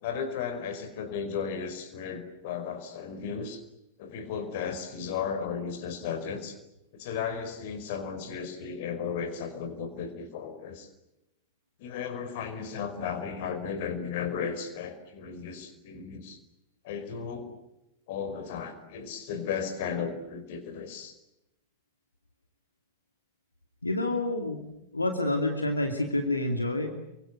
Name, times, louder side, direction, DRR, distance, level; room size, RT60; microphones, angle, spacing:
voice 1, 0.0-3.6 4.0-6.5 6.9-10.9 11.8-16.4 16.8-17.5 18.1-21.1, left 6 dB, 50° left, 9 dB, 4.9 m, -35 dB
voice 2, 23.8-24.6 24.9-26.9, left 2 dB, 80° left, 4 dB, 2.7 m, -28 dB
29.0 x 24.0 x 8.1 m, 0.88 s
figure-of-eight pair, 90°, 0 cm